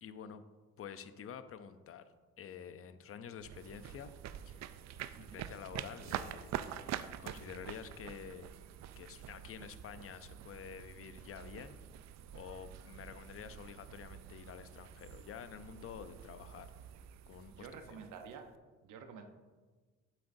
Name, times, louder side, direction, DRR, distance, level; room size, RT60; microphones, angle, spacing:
voice 1, 0.0-0.4 0.8-4.1 4.5-4.6 5.3-6.5 7.2-8.5 9.0-11.8 12.3-16.7 17.3-17.8, left 8 dB, 50° left, 11 dB, 0.6 m, -49 dB
sound 1, 3.4-18.6, right 10 dB, 65° right, 0.4 m, -47 dB
voice 2, 17.5-18.5 18.8-19.2, right 6 dB, 85° right, 6 dB, 0.9 m, -49 dB
8.8 x 7.5 x 2.6 m, 1.4 s
cardioid pair, 90°, 30 cm